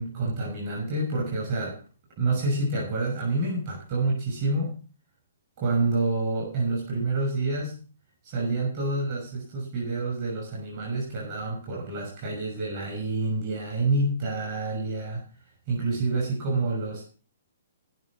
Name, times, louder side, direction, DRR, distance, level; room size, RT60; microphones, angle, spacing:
voice 1, 0.0-1.8 2.2-4.8 5.6-7.8 8.2-15.2 15.7-17.0, right 2 dB, 40° right, -2 dB, 6.3 m, -28 dB
17.5 x 6.5 x 6.3 m, 0.38 s
hypercardioid pair, 145°, 0 cm